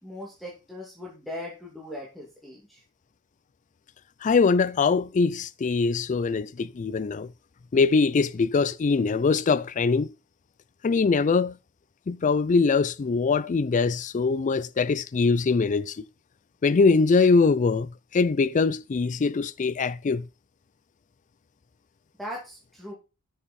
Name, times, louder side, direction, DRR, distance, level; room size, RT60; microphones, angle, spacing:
voice 1, 0.0-2.8 22.2-22.9, left 1 dB, ahead, 2.4 m, -39 dB
voice 2, 4.2-7.3 7.7-10.1 10.8-11.6 12.1-16.1 16.6-20.3, left 4 dB, 35° left, 0.4 m, -22 dB
10.0 x 6.7 x 4.2 m
head